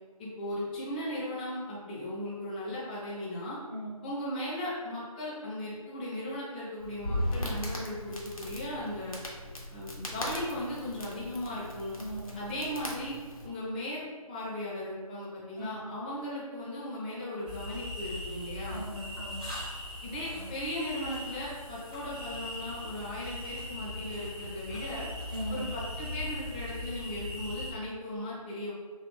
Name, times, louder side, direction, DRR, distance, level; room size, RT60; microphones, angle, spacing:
voice 1, 0.2-3.6 4.0-9.2 9.7-11.9 12.3-13.2 13.4-14.0 14.3-18.8 20.0-25.1 25.5-28.7, left 1 dB, 15° left, -9 dB, 0.8 m, -37 dB
Crackle, 6.8-13.5, equal, 65° left, 0.9 m, -38 dB
voice 2, 12.0-12.3 15.6-15.9 18.7-19.5 25.3-25.6, right 1 dB, 35° right, -4 dB, 0.9 m, -39 dB
sound 1, 17.5-27.7, left 1 dB, 15° right, 0.5 m, -40 dB
3.2 x 2.4 x 3.4 m, 1.5 s
figure-of-eight pair, 155°, 19 cm